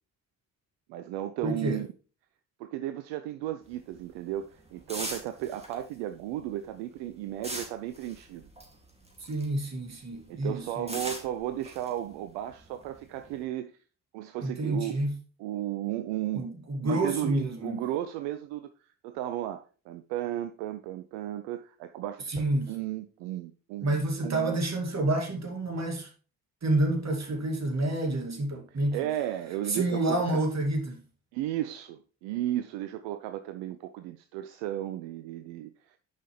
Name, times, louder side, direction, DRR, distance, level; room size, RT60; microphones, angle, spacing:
voice 1, 0.9-1.9 2.6-8.5 10.3-13.8 14.1-15.0 15.4-16.5 16.8-18.7 19.0-24.6 28.7-30.4 31.3-36.0, right 13 dB, 65° right, 0.7 m, -34 dB
voice 2, 1.4-1.8 9.2-11.0 14.4-15.1 16.3-17.9 22.3-22.7 23.8-26.1 26.6-29.0 29.7-31.0, right 1 dB, 35° right, 2.5 m, -29 dB
sound 1, 3.6-9.7 10.0-13.4, right 1 dB, 15° right, 2.5 m, -41 dB
10.0 x 5.6 x 3.3 m
figure-of-eight pair, 45°, 46 cm